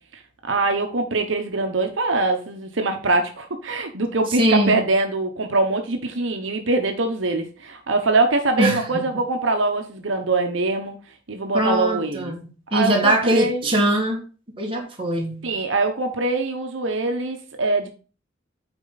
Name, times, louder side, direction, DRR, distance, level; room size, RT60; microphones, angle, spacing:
voice 1, 0.4-11.0 11.3-12.3 12.7-13.7 15.4-17.9, right 3 dB, 80° right, 1.0 m, -23 dB
voice 2, 4.4-4.8 8.6-9.1 11.5-14.2 14.6-15.5, right 1 dB, 25° right, 2.0 m, -22 dB
8.8 x 4.6 x 4.0 m
head